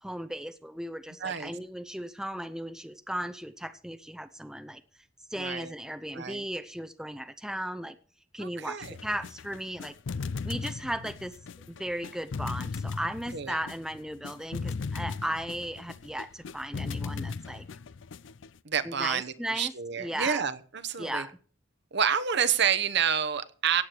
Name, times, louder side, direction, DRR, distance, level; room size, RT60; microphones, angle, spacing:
voice 1, 0.0-4.8 5.3-8.0 8.3-9.9 10.4-11.3 11.7-17.7 18.8-20.4 21.0-21.4, right 1 dB, 5° right, 11 dB, 0.6 m, -36 dB
voice 2, 1.2-1.5 5.4-5.7 6.1-6.4 8.4-9.0 13.3-13.6 18.6-21.3 21.9-23.8, right 7 dB, 60° right, 10 dB, 1.0 m, -29 dB
sound 1, 8.8-18.6, left 4 dB, 65° left, 0.5 m, -37 dB
17.0 x 8.5 x 4.5 m, 0.42 s
head